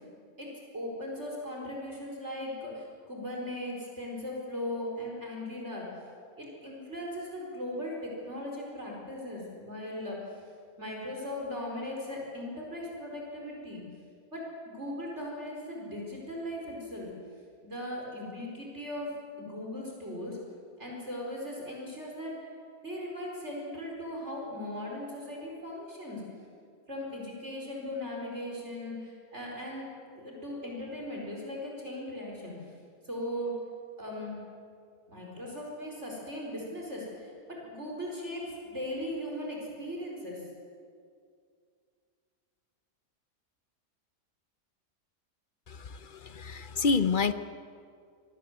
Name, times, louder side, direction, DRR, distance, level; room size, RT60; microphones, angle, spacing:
voice 1, 0.4-5.9 6.4-10.4 10.8-13.8 14.3-17.1 17.6-20.4 20.8-22.5 22.8-26.2 26.9-29.8 30.1-32.5 33.0-33.6 34.0-34.4 35.1-40.4, left 1 dB, 45° right, -2 dB, 5.0 m, -38 dB
voice 2, 46.2-47.3, left 4 dB, 45° left, 11 dB, 0.7 m, -27 dB
25.0 x 19.0 x 8.0 m, 2.3 s
omnidirectional pair, 1.7 m